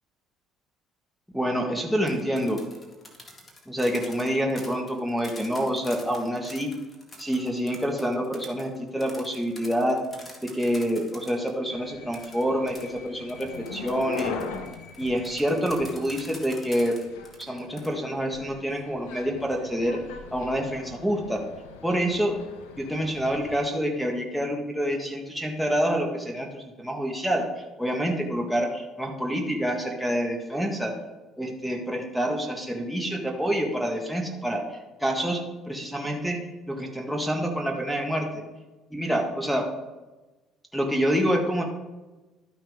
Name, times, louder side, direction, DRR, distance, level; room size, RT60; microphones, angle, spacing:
voice 1, 1.3-2.6 3.7-6.7 7.2-10.0 10.4-14.3 15.0-17.0 17.4-20.0 20.3-21.4 21.8-22.4 22.8-27.5 27.8-31.0 31.4-34.7 35.0-38.4 38.9-39.7 40.7-41.6, equal, ahead, 2 dB, 1.7 m, -27 dB
sound 1, 1.9-11.5 12.1-17.9, left 1 dB, 25° left, 2.0 m, -46 dB
sound 2, 11.7-23.6, left 5 dB, 90° left, 0.9 m, -41 dB
12.5 x 5.7 x 3.6 m, 1.1 s
supercardioid pair, 70°, 0 cm